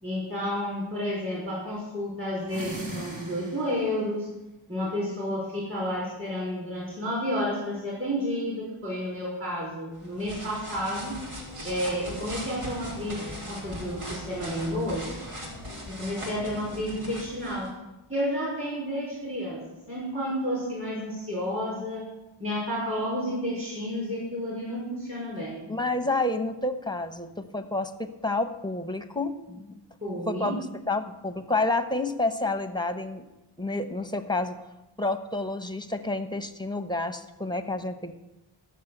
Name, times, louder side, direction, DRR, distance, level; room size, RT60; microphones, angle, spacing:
voice 1, 0.0-4.3 4.7-11.2 11.6-15.1 15.9-17.7 18.1-19.6 19.9-22.0 22.4-25.6 30.0-30.6, equal, 25° right, -6 dB, 5.3 m, -31 dB
sound 1, 2.4-4.0, right 1 dB, 60° right, 2.8 m, -39 dB
sound 2, 9.9-17.7, equal, 85° right, 2.9 m, -39 dB
voice 2, 25.7-29.8 30.3-33.3 33.6-34.6 35.0-38.1, left 2 dB, 10° left, 8 dB, 1.0 m, -29 dB
13.5 x 6.7 x 8.0 m, 1.0 s
wide cardioid pair, 55°, 50 cm